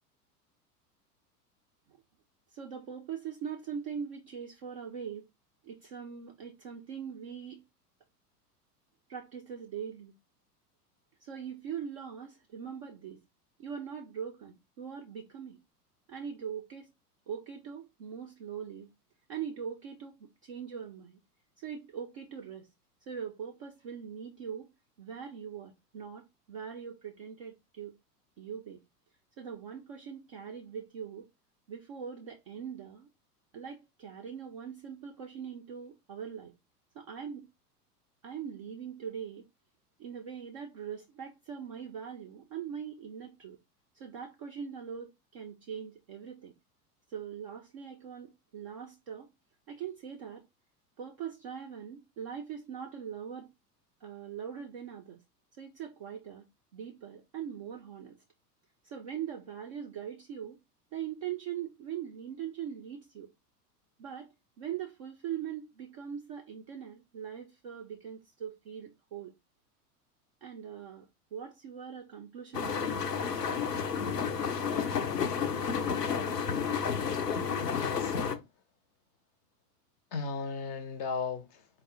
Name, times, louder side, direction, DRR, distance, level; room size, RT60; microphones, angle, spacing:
voice 1, 2.5-5.2 5.6-7.6 9.1-10.1 11.2-13.2 13.6-15.6 16.1-16.9 17.3-18.9 19.3-21.2 21.6-22.7 23.1-24.7 25.0-28.0 28.4-28.8 29.4-31.3 31.7-33.1 33.5-36.5 36.9-37.5 38.2-39.5 40.0-43.6 43.9-46.5 47.1-49.3 49.7-50.4 51.0-53.5 54.0-55.2 55.6-56.5 56.7-58.2 58.8-60.6 60.9-63.3 64.0-64.3 64.6-69.3 70.4-73.0, right 8 dB, 25° right, 0.3 m, -41 dB
sound 1, 72.5-78.4, left 6 dB, 85° left, 0.6 m, -31 dB
voice 2, 77.6-78.4 80.1-81.6, left 5 dB, 30° left, 0.5 m, -36 dB
4.1 x 2.1 x 3.5 m
figure-of-eight pair, 90°, 47 cm